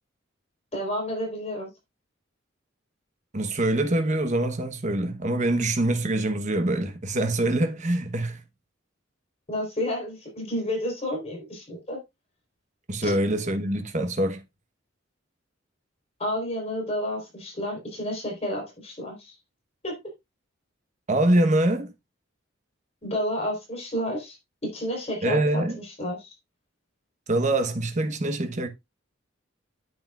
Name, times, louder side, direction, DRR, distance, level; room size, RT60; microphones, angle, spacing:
voice 1, 0.7-1.7 9.5-12.0 13.0-13.2 16.2-19.3 19.8-20.0 23.0-24.4 24.6-26.3, equal, 30° left, 4.0 m, -31 dB
voice 2, 3.3-8.4 12.9-14.4 21.1-21.9 25.2-25.8 27.3-28.7, right 1 dB, 40° right, 1.1 m, -24 dB
9.3 x 8.1 x 2.4 m
head